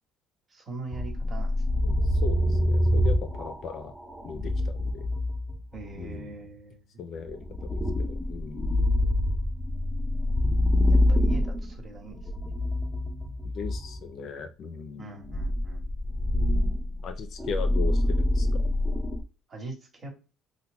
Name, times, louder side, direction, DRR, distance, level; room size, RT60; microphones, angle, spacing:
voice 1, 0.5-1.5 5.7-6.8 10.9-12.2 15.0-15.9 17.9-18.0 19.5-20.1, right 3 dB, 30° right, 1 dB, 1.6 m, -41 dB
sound 1, 0.9-6.1 7.3-14.0 15.2-19.2, left 1 dB, ahead, 0.7 m, -26 dB
voice 2, 1.8-3.9 4.2-5.1 5.9-6.4 7.0-8.8 13.5-15.3 17.0-18.6, left 5 dB, 55° left, 9 dB, 0.5 m, -38 dB
5.7 x 2.2 x 2.3 m, 0.32 s
cardioid pair, 115°, 0 cm